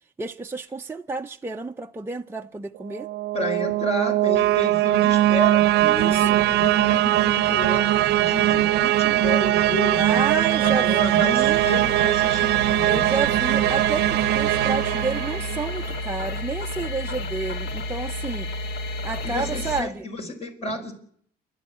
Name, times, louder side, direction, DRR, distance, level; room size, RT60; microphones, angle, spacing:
voice 1, 0.2-3.1 5.8-6.5 9.9-11.6 12.9-18.5 19.0-20.1, right 4 dB, 15° right, 0.8 m, -30 dB
sound 1, 2.9-15.9, right 15 dB, 80° right, 0.9 m, -21 dB
voice 2, 3.3-10.2 10.6-13.1 19.2-20.9, left 2 dB, 35° left, 5.3 m, -31 dB
sound 2, 11.5-19.8, left 1 dB, 70° left, 2.4 m, -32 dB
29.0 x 11.5 x 9.9 m
cardioid pair, 110°, 17 cm